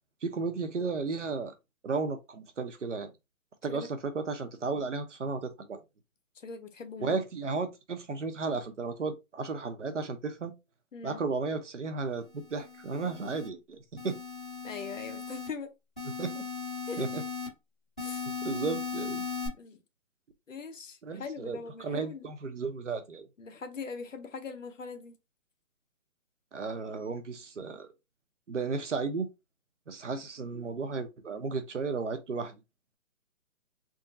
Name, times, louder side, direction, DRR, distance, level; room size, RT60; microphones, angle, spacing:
voice 1, 0.2-1.5 1.8-3.1 3.6-5.8 7.0-10.5 11.0-14.2 16.2-16.4 17.0-17.2 18.4-19.3 21.0-23.3 26.5-27.9 28.5-29.3 29.9-32.5, right 4 dB, 55° right, 0.8 m, -34 dB
voice 2, 6.4-7.2 10.9-11.2 14.6-15.7 16.9-17.1 18.0-18.3 19.6-19.8 20.5-22.3 23.4-25.2, left 5 dB, 60° left, 0.8 m, -41 dB
sound 1, 12.4-13.5 14.0-15.5 16.0-17.5 18.0-19.5, left 6 dB, 5° left, 0.9 m, -38 dB
3.6 x 2.1 x 3.9 m
hypercardioid pair, 180°, 42 cm